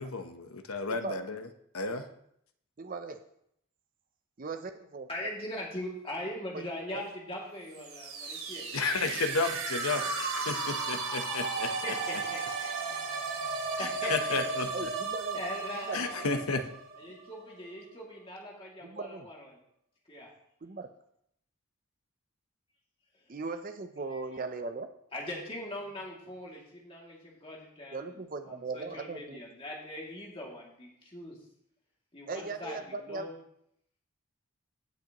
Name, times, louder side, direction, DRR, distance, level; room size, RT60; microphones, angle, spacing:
voice 1, 0.0-1.5 1.7-2.1 8.7-11.7 13.8-14.9 15.9-16.6, left 3 dB, 90° left, 7 dB, 0.9 m, -32 dB
voice 2, 2.8-3.2 4.4-5.1 6.5-6.6 6.9-7.0 14.7-15.4 15.9-16.0 16.5-16.6 18.8-19.3 20.6-20.9 23.3-24.9 27.9-29.4 32.3-33.3, right 3 dB, 40° right, 8 dB, 0.5 m, -38 dB
voice 3, 5.1-8.7 11.6-13.0 13.5-14.4 15.3-16.4 17.0-19.5 20.1-20.3 25.1-31.4 32.1-33.3, left 1 dB, 25° left, -3 dB, 2.4 m, -41 dB
sound 1, 7.7-17.5, right 4 dB, 85° right, 1.6 m, -35 dB
16.5 x 6.4 x 3.0 m, 0.72 s
head